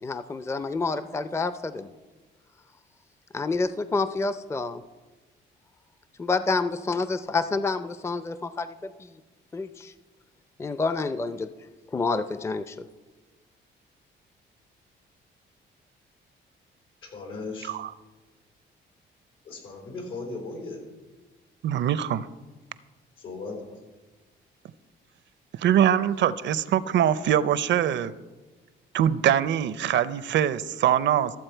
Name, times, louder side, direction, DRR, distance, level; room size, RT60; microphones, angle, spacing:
voice 1, 0.0-1.9 3.3-4.8 6.2-9.1 9.5-9.9 10.6-11.5 11.9-12.8, left 3 dB, 15° left, 13 dB, 0.4 m, -28 dB
voice 2, 17.0-17.8 19.4-20.8 23.2-23.6, left 3 dB, 85° left, 0 dB, 3.9 m, -37 dB
voice 3, 21.6-22.3 25.6-28.1 28.9-31.3, right 10 dB, 65° right, 16 dB, 0.5 m, -23 dB
14.0 x 7.4 x 4.5 m, 1.2 s
cardioid pair, 90°, 20 cm